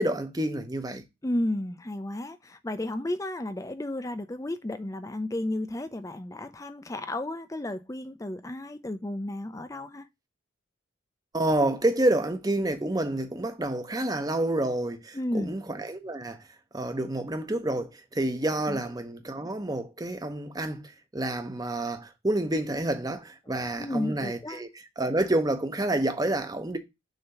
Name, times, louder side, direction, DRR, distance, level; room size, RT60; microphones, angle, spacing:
voice 1, 0.0-1.0 11.3-16.4 16.7-26.8, right 1 dB, 20° right, 0.7 m, -28 dB
voice 2, 1.2-10.0 15.1-15.5 18.7-18.8 23.8-24.6, left 1 dB, 15° left, 0.5 m, -33 dB
6.5 x 2.9 x 5.7 m
head